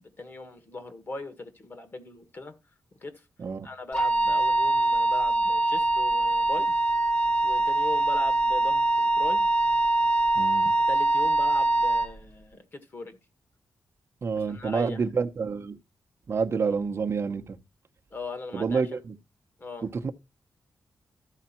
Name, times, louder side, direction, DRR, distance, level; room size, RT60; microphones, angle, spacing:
voice 1, 0.0-2.5 3.0-3.3 3.6-6.7 7.4-9.5 10.9-13.2 14.3-15.0 16.6-16.7 18.1-19.0 19.6-19.9, left 2 dB, 35° left, 1.7 m, -39 dB
Wind instrument woodwind instrument, 3.9-12.1, right 2 dB, 15° left, 1.5 m, -23 dB
voice 2, 10.3-10.7 14.2-15.8 16.3-17.6 18.5-19.1 19.8-20.1, right 5 dB, 45° right, 0.9 m, -28 dB
13.5 x 4.9 x 4.3 m
wide cardioid pair, 165°, 6 cm